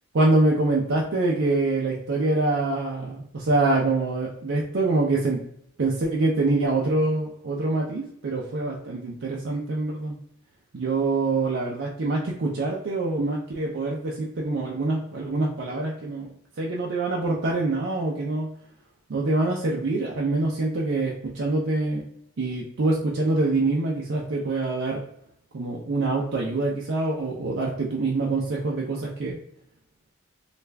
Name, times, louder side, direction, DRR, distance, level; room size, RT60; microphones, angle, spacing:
voice 1, 0.1-5.4 5.8-10.2 10.7-16.3 16.6-18.5 19.1-22.0 22.4-25.0 25.5-29.4, right 2 dB, 55° right, -3 dB, 0.5 m, -25 dB
3.3 x 2.4 x 3.2 m, 0.72 s
head